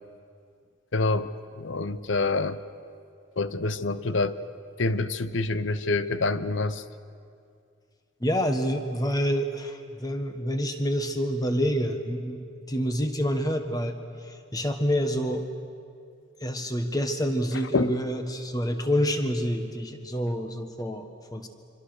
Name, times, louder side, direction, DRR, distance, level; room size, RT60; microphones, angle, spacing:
voice 1, 0.9-1.3 1.6-2.6 3.4-4.4 4.8-6.8 17.7-17.9, left 3 dB, 70° left, 13 dB, 0.9 m, -26 dB
voice 2, 8.2-12.4 12.7-15.4 16.4-21.5, equal, 20° left, 6 dB, 1.5 m, -27 dB
25.5 x 25.0 x 6.6 m, 2.4 s
head